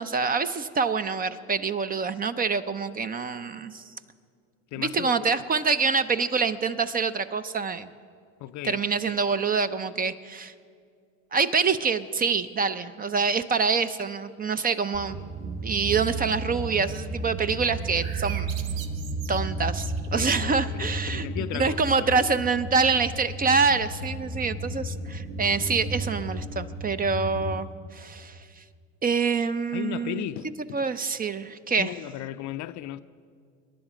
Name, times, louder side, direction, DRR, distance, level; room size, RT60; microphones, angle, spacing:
voice 1, 0.0-3.9 4.8-7.9 8.6-10.5 11.3-15.2 15.6-18.5 19.3-21.3 21.6-28.6 29.0-30.2 30.7-31.9, right 5 dB, 25° right, 0.5 m, -26 dB
voice 2, 4.7-5.4 8.4-8.8 20.2-21.8 22.2-22.5 29.7-30.8 31.8-33.0, left 13 dB, 50° left, 0.5 m, -36 dB
sound 1, 14.9-27.6, right 2 dB, 50° right, 1.9 m, -33 dB
sound 2, 17.8-20.5, right 8 dB, 80° right, 1.0 m, -42 dB
22.5 x 10.5 x 5.0 m
hypercardioid pair, 85°, 39 cm